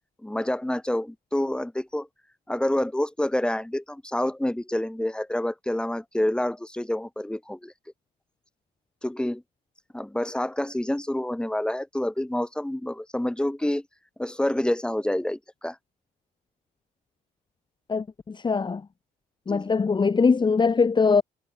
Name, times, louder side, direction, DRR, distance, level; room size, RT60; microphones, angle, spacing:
voice 1, 0.2-2.1 2.5-7.7 9.0-9.4 9.9-13.9 14.2-15.8 19.5-19.7, left 1 dB, 5° left, 7.5 m, -28 dB
voice 2, 17.9-18.8 19.5-21.2, left 5 dB, 25° left, 6.3 m, -22 dB
cardioid pair, 110°, 17 cm